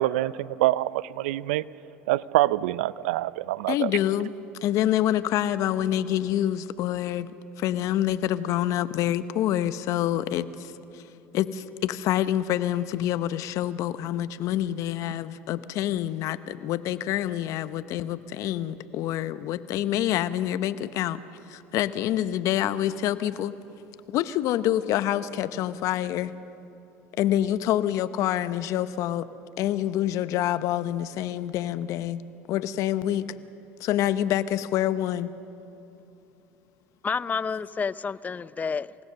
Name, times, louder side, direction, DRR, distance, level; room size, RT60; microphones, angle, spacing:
voice 1, 0.0-1.6 2.1-3.9, right 16 dB, 80° right, 19 dB, 0.5 m, -25 dB
voice 2, 3.7-4.3 4.6-7.3 7.6-11.0 11.3-21.2 21.5-23.6 24.1-26.3 27.2-29.3 29.6-32.2 32.5-33.3 33.8-35.3, left 12 dB, 60° left, 13 dB, 0.9 m, -27 dB
voice 3, 37.0-39.0, left 5 dB, 25° left, 17 dB, 0.6 m, -30 dB
28.0 x 17.0 x 6.7 m, 2.8 s
hypercardioid pair, 80°, 6 cm